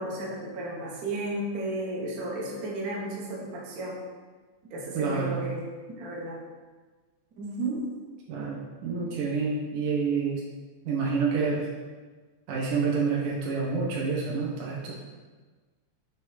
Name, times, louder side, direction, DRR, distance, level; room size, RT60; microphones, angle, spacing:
voice 1, 0.0-4.0 4.7-5.7 6.0-6.4 7.4-7.9, right 1 dB, 65° right, -3 dB, 0.9 m, -33 dB
voice 2, 4.9-5.4 8.3-10.4 10.8-11.6 12.5-14.9, right 5 dB, 85° right, -4 dB, 2.9 m, -28 dB
7.6 x 3.2 x 4.9 m, 1.4 s
omnidirectional pair, 3.5 m